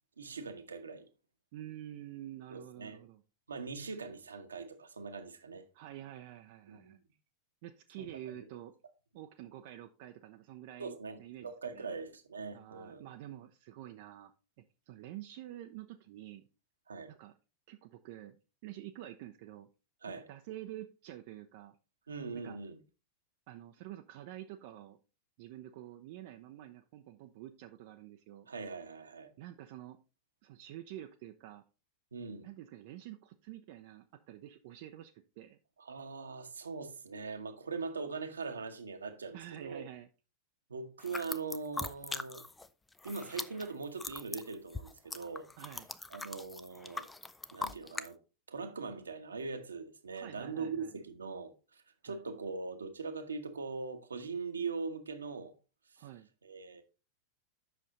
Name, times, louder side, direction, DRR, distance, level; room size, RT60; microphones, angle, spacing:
voice 1, 0.2-1.1 2.5-3.0 3.5-5.6 6.7-7.0 8.0-8.1 10.8-13.0 16.9-17.1 20.0-20.3 22.1-22.8 28.5-29.3 32.1-32.5 35.8-39.8 40.7-42.4 43.0-45.5 46.1-47.1 47.5-48.2 48.5-55.5 56.4-56.8, right 4 dB, 75° right, 1.1 m, -41 dB
voice 2, 1.5-3.2 5.7-7.0 7.6-8.7 9.1-11.9 12.5-14.3 14.6-16.5 17.1-17.3 17.7-18.4 18.6-19.7 20.1-21.8 22.3-22.6 23.5-25.0 25.4-28.5 29.4-30.0 30.4-31.6 32.4-35.6 39.3-40.1 45.6-45.9 50.1-50.9 52.0-52.2 56.0-56.3, right 13 dB, 50° right, 0.6 m, -48 dB
sound 1, 41.0-42.7 42.9-48.1, left 3 dB, 10° left, 0.5 m, -41 dB
8.0 x 6.1 x 3.9 m
figure-of-eight pair, 90°, 0 cm